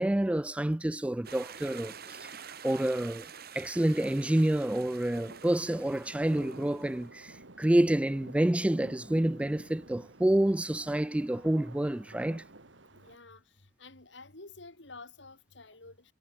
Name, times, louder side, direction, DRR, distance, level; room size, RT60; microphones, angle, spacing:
voice 1, 0.0-12.5, right 1 dB, 5° right, 0.3 m, -28 dB
sound 1, 1.2-7.1, right 7 dB, 60° right, 3.0 m, -48 dB
sound 2, 5.1-13.2, right 2 dB, 85° right, 2.6 m, -51 dB
voice 2, 12.9-13.4 13.8-16.1, left 3 dB, 70° left, 3.3 m, -50 dB
head